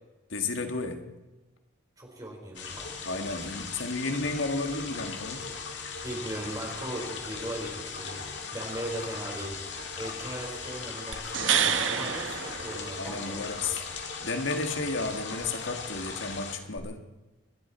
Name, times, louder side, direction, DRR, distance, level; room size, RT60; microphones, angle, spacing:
voice 1, 0.3-1.2 3.1-5.5 13.0-13.8 14.2-17.0, left 3 dB, 85° left, 6 dB, 1.8 m, -32 dB
voice 2, 2.0-3.0 6.0-8.2 8.5-9.6 9.9-13.4, right 1 dB, 20° right, -1 dB, 4.6 m, -38 dB
sound 1, 2.5-16.5, left 5 dB, 60° left, 2.3 m, -38 dB
sound 2, 11.1-13.4 16.8-16.9, right 8 dB, 85° right, 1.2 m, -28 dB
27.5 x 11.5 x 4.3 m, 1.1 s
head